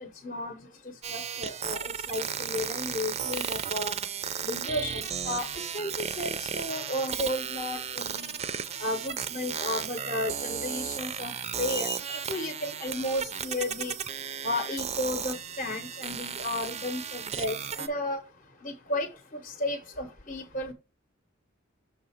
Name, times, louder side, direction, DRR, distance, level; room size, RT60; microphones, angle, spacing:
voice 1, 0.2-0.5 1.1-3.9 4.4-5.5 5.7-8.3 8.8-11.3 11.6-13.9 14.4-18.2 18.6-19.1 19.6-20.7, left 1 dB, 35° left, 0.8 m, -33 dB
sound 1, 1.0-17.9, right 7 dB, 30° right, 0.5 m, -34 dB
6.3 x 3.8 x 5.7 m
head